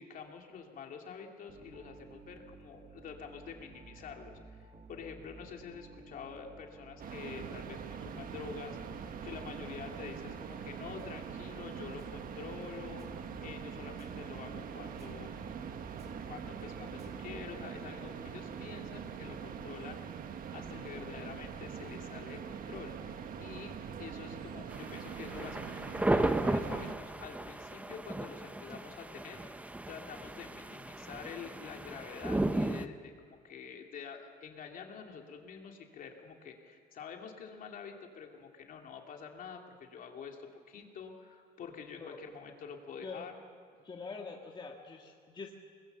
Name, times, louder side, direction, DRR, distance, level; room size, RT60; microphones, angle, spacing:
voice 1, 0.0-4.3 4.6-15.3 16.3-20.0 20.5-23.7 24.0-29.4 29.9-43.3, left 6 dB, 55° left, 2 dB, 2.8 m, -47 dB
sound 1, 1.5-17.9, right 3 dB, 40° right, 1.7 m, -54 dB
sound 2, 7.0-27.0, right 7 dB, 55° right, 1.5 m, -43 dB
voice 2, 20.7-21.2 41.9-42.2 43.0-43.3 43.8-45.6, left 4 dB, 25° left, 1 dB, 1.8 m, -45 dB
sound 3, 24.7-32.9, right 1 dB, 10° right, 0.8 m, -35 dB
23.0 x 20.5 x 6.8 m, 2.1 s
cardioid pair, 110°, 17 cm